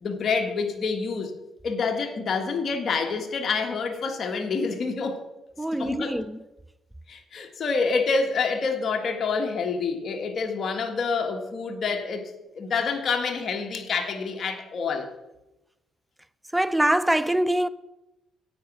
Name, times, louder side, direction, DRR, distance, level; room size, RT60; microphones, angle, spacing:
voice 1, 0.0-1.3 1.6-5.2 5.8-6.2 7.1-15.1, left 4 dB, 50° left, 1.6 m, -27 dB
voice 2, 5.6-6.4 16.5-17.7, right 1 dB, 5° right, 0.5 m, -23 dB
9.5 x 8.8 x 6.1 m
cardioid pair, 90°, 0 cm